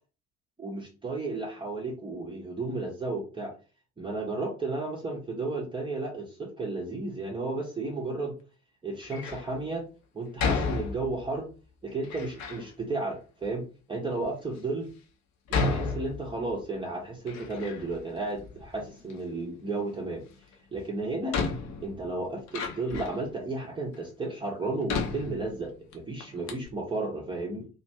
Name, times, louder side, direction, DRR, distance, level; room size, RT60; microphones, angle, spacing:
voice 1, 0.6-3.5 4.0-8.3 8.8-9.8 10.1-11.5 11.8-14.9 15.5-20.2 20.7-21.4 21.8-27.7, right 2 dB, 15° right, -1 dB, 0.6 m, -33 dB
Door, 9.0-9.5 10.4-11.4 12.0-12.7 13.4-13.5 14.2-14.3 15.5-16.6 17.0-18.1 18.3-19.2 20.5-20.6 21.3-23.3 23.9-24.0 24.9-25.9 26.2-26.3 26.5-26.7, left 4 dB, 45° left, 0.7 m, -32 dB
2.5 x 2.4 x 3.0 m, 0.34 s
figure-of-eight pair, 55°, 37 cm